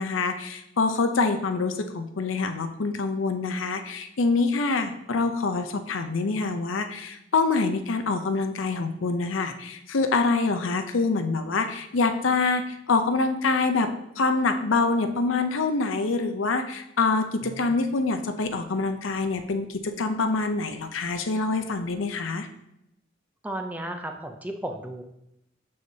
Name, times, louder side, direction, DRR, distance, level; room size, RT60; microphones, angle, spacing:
voice 1, 0.0-22.5, left 3 dB, 85° left, 7 dB, 0.6 m, -25 dB
voice 2, 23.4-25.0, right 1 dB, 10° right, 4 dB, 0.5 m, -34 dB
7.0 x 6.4 x 2.8 m, 0.83 s
head